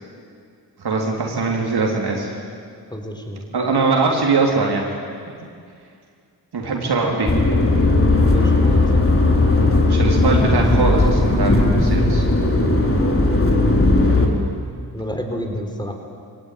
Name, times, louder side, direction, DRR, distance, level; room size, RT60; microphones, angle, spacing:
voice 1, 0.8-2.3 3.5-4.9 5.4-5.5 6.5-7.4 7.6-7.9 9.8-12.2, right 3 dB, 65° right, 0 dB, 3.6 m, -21 dB
voice 2, 2.9-3.5 8.2-9.0 14.9-15.9, equal, 10° left, 3 dB, 4.3 m, -29 dB
sound 1, 7.3-14.3, left 2 dB, 30° left, 3.7 m, -16 dB
21.5 x 18.0 x 9.4 m, 2.2 s
cardioid pair, 60°, 41 cm